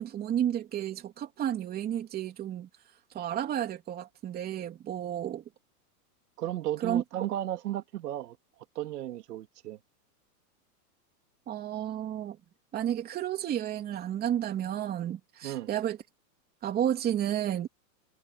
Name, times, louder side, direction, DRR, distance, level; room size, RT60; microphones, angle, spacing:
voice 1, 0.0-2.7 3.1-5.4 6.8-7.0 11.5-12.4 12.7-16.0 16.6-17.7, right 10 dB, 20° right, 3.0 m, -31 dB
voice 2, 6.4-8.4 8.7-9.8 15.4-15.7, right 13 dB, 75° right, 3.3 m, -34 dB
supercardioid pair, 165°, 48 cm